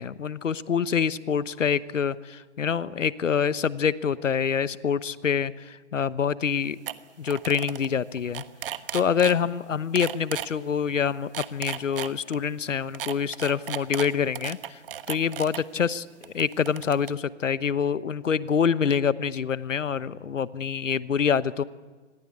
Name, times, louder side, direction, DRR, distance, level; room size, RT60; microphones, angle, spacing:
voice 1, 0.0-6.8 7.2-8.4 8.9-14.8 15.1-21.6, left 7 dB, 85° left, 16 dB, 1.1 m, -26 dB
sound 1, 6.5-6.6 6.9-7.0 7.2-7.9 8.2-9.4 10.0-10.5 11.2-12.4 12.9-15.6 16.2-17.1, right 10 dB, 50° right, 1.3 m, -34 dB
26.5 x 21.0 x 8.6 m, 1.3 s
hypercardioid pair, 150°, 37 cm